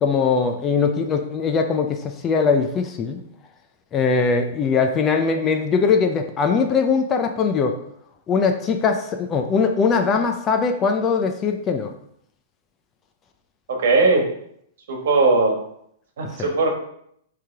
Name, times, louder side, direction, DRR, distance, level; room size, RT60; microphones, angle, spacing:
voice 1, 0.0-3.2 3.9-7.8 8.3-11.9 16.4-16.5, left 5 dB, 20° left, 6 dB, 0.4 m, -21 dB
voice 2, 13.7-14.3 14.9-15.6 16.2-16.7, right 3 dB, 65° right, 2 dB, 1.6 m, -18 dB
9.4 x 3.3 x 3.4 m, 0.70 s
supercardioid pair, 170°, 0 cm